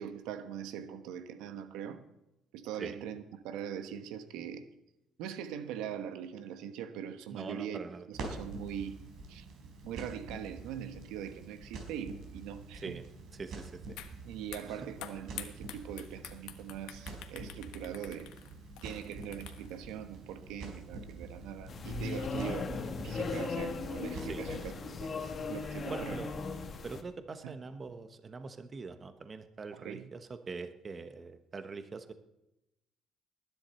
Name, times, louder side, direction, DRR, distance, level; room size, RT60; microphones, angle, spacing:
voice 1, 0.0-2.0 2.5-4.7 5.2-7.8 8.1-8.9 9.3-9.4 9.8-13.0 14.2-18.3 18.8-22.7 23.0-25.1 25.5-26.2 27.4-27.5 29.7-30.1, right 9 dB, 90° right, 9 dB, 1.1 m, -42 dB
voice 2, 7.3-8.1 12.8-13.0 13.3-14.0 14.7-14.9 24.3-24.4 25.9-26.3 26.8-32.1, right 4 dB, 30° right, 9 dB, 1.0 m, -43 dB
Crackle, 8.1-24.6, right 3 dB, 70° right, 4.5 m, -46 dB
sound 1, 14.0-14.1 14.4-19.8, left 12 dB, 85° left, 1.3 m, -47 dB
sound 2, 21.7-27.0, left 4 dB, 35° left, 1.4 m, -37 dB
20.0 x 10.5 x 4.3 m, 0.90 s
cardioid pair, 115°, 0 cm